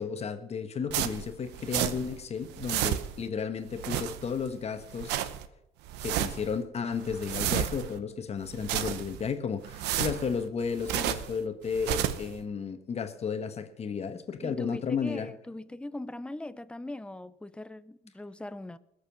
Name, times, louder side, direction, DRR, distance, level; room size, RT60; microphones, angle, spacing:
voice 1, 0.0-5.3 6.0-15.3, left 6 dB, 40° left, 1.3 m, -33 dB
sound 1, 0.9-2.2 2.4-3.3 3.7-4.5 4.8-5.5 5.9-6.5 6.9-8.0 8.4-9.3 9.6-11.4 11.7-12.3, right 11 dB, 90° right, 0.8 m, -32 dB
voice 2, 14.4-18.8, left 2 dB, 5° left, 0.5 m, -40 dB
20.0 x 6.8 x 6.1 m
cardioid pair, 110°, 17 cm